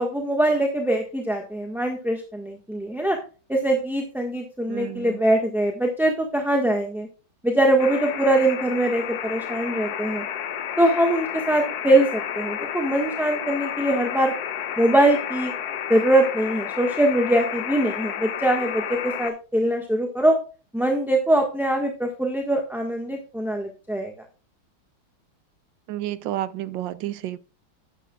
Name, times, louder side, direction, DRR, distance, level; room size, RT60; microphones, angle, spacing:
voice 1, 0.0-3.2 3.5-7.1 7.4-10.2 10.8-14.3 14.8-15.5 15.9-20.3 20.7-24.1, right 1 dB, ahead, 1.1 m, -22 dB
voice 2, 4.7-5.2 25.9-27.4, right 13 dB, 75° right, 1.3 m, -30 dB
sound 1, 7.8-19.3, left 9 dB, 60° left, 1.2 m, -31 dB
12.0 x 9.8 x 2.4 m
omnidirectional pair, 2.2 m